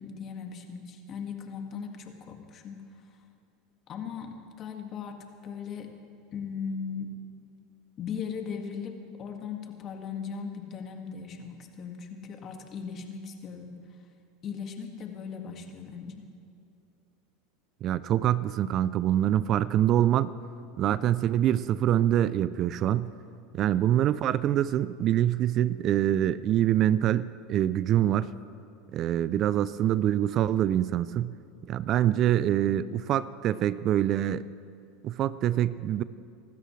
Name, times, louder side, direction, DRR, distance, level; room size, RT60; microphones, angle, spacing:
voice 1, 0.0-2.8 3.9-5.9 6.3-7.1 8.0-13.7 14.4-16.2, left 6 dB, 40° left, 4 dB, 1.9 m, -38 dB
voice 2, 17.8-20.3 20.8-23.1 23.5-28.3 28.9-31.3 31.7-34.5 35.0-36.0, right 11 dB, 45° right, 17 dB, 0.4 m, -25 dB
25.5 x 13.0 x 3.2 m, 2.5 s
hypercardioid pair, 100°, 0 cm